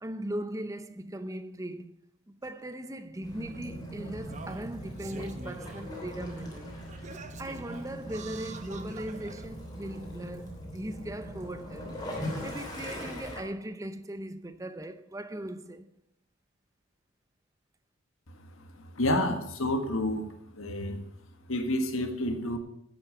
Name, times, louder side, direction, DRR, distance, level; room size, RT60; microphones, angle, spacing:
voice 1, 0.0-2.0 2.3-6.7 7.4-15.9, right 1 dB, 15° right, 0.7 m, -39 dB
Singing, 2.4-2.5 3.5-3.6 4.2-5.9 6.4-6.5 6.9-9.5 10.2-10.3, right 3 dB, 35° right, 0.9 m, -47 dB
Waves surf / Splash splatter / Trickle dribble, 3.2-13.4, equal, 20° left, 3.1 m, -41 dB
voice 2, 18.9-20.3 20.5-21.1 21.5-22.6, left 1 dB, 90° left, 1.7 m, -29 dB
10.5 x 8.2 x 8.0 m
head